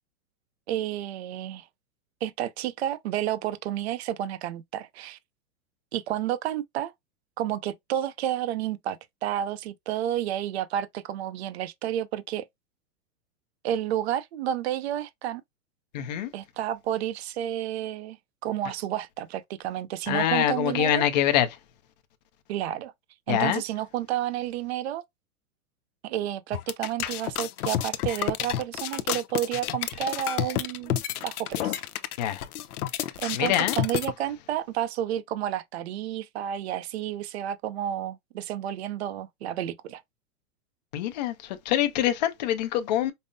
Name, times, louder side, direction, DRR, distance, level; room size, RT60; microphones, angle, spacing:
voice 1, 0.7-1.7 2.2-5.2 5.9-6.9 7.4-12.4 13.6-15.4 16.3-18.2 18.4-21.0 22.5-22.9 23.3-25.0 26.0-31.8 33.2-40.0, right 11 dB, 50° right, 0.5 m, -31 dB
voice 2, 15.9-16.3 20.1-21.5 23.3-23.6 32.2-32.4 33.3-33.8 40.9-43.1, left 11 dB, 30° left, 0.5 m, -25 dB
sound 1, 26.5-34.1, left 12 dB, 80° left, 0.7 m, -30 dB
5.4 x 2.0 x 2.6 m
supercardioid pair, 165°, 44 cm